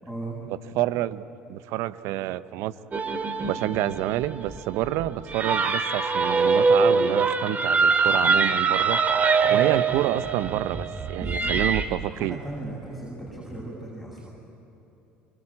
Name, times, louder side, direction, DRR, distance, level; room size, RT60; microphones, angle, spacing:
voice 1, 0.0-0.4 9.4-9.8 11.2-14.3, right 2 dB, 5° right, -5 dB, 7.9 m, -38 dB
voice 2, 0.8-1.2 1.5-2.7 3.4-9.0 9.5-12.4, right 14 dB, 70° right, 15 dB, 0.8 m, -28 dB
sound 1, 2.9-11.9, right 4 dB, 30° right, 2.4 m, -23 dB
25.0 x 24.5 x 8.7 m, 2.9 s
hypercardioid pair, 70°, 5 cm